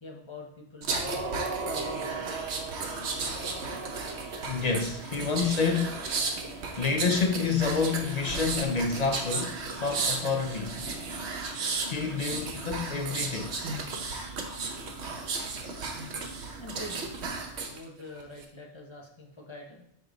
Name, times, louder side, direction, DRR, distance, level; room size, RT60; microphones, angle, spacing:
voice 1, 0.0-2.6 6.7-7.1 16.6-17.2 17.7-19.8, left 1 dB, 25° left, 0.9 m, -45 dB
sound 1, 0.8-17.8 18.2-18.4, right 4 dB, 75° right, 1.1 m, -34 dB
voice 2, 4.4-6.1 6.8-10.8 11.9-13.6, left 5 dB, 55° left, 0.5 m, -28 dB
5.3 x 4.9 x 3.8 m
omnidirectional pair, 1.2 m